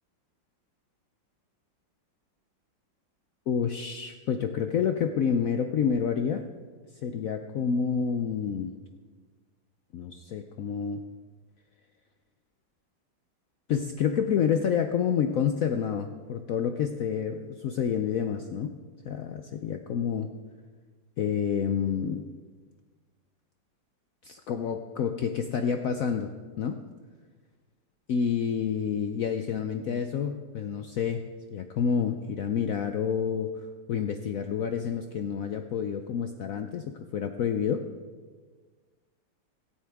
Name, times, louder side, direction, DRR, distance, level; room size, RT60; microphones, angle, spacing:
voice 1, 3.5-6.4 7.0-8.7 9.9-11.0 13.7-18.7 19.0-20.3 21.2-22.2 24.2-26.3 26.6-26.8 28.1-33.6 33.9-37.8, left 7 dB, 75° left, 7 dB, 0.8 m, -28 dB
17.0 x 13.0 x 3.5 m, 1.4 s
omnidirectional pair, 2.1 m